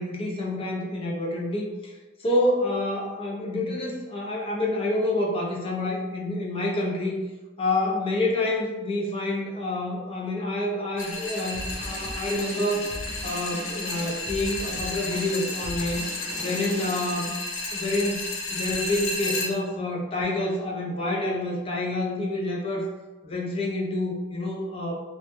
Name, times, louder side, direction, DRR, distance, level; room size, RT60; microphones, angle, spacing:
voice 1, 0.0-1.9 2.2-7.2 7.6-12.9 13.2-16.0 16.4-17.3 17.7-22.9 23.2-25.0, left 1 dB, 30° left, -2 dB, 0.4 m, -28 dB
sound 1, 11.0-19.5, left 2 dB, 85° left, 0.5 m, -32 dB
sound 2, 11.5-17.3, right 1 dB, 70° right, 0.4 m, -39 dB
2.1 x 2.0 x 2.9 m, 1.2 s
head